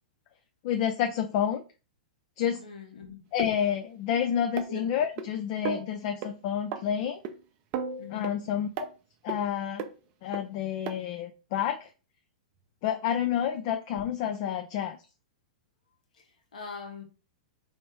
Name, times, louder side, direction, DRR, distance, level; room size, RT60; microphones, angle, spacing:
voice 1, 0.6-1.6 2.4-2.6 3.3-7.2 8.1-8.7 9.2-9.9 10.2-11.9 12.8-15.0, left 9 dB, 50° left, 0.4 m, -29 dB
voice 2, 2.6-3.2 4.7-4.9 8.0-8.3 16.2-17.0, left 3 dB, 75° left, 1.2 m, -42 dB
sound 1, 3.4-3.5 4.6-5.3 5.6-5.9 6.2-6.3 6.7-6.8 7.2-7.4 7.7-8.4 8.8-8.9 9.3-9.4 9.8-9.9 10.3-10.4 10.9-11.0 11.6-11.7, right 7 dB, 40° right, 0.6 m, -34 dB
3.3 x 2.8 x 3.3 m
hypercardioid pair, 105°, 4 cm